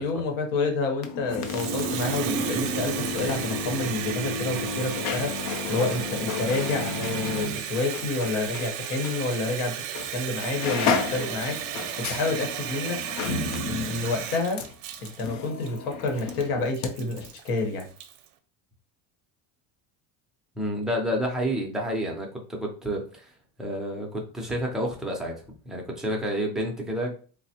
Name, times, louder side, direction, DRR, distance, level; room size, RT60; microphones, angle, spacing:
voice 1, 0.0-9.8 10.1-11.6 12.0-13.0 13.7-14.6 15.0-17.9, left 3 dB, 90° left, 3 dB, 1.0 m, -29 dB
sound 1, 0.9-8.7 9.0-9.2 9.9-10.1 10.4-16.9 17.2-17.3, left 4 dB, 55° left, 0.5 m, -32 dB
Water tap faucet, 1.3-18.2, right 9 dB, 75° right, 0.5 m, -34 dB
voice 2, 20.6-23.3 23.6-27.3, equal, ahead, -1 dB, 0.4 m, -30 dB
3.3 x 2.0 x 2.7 m, 0.39 s
cardioid pair, 150°, 41 cm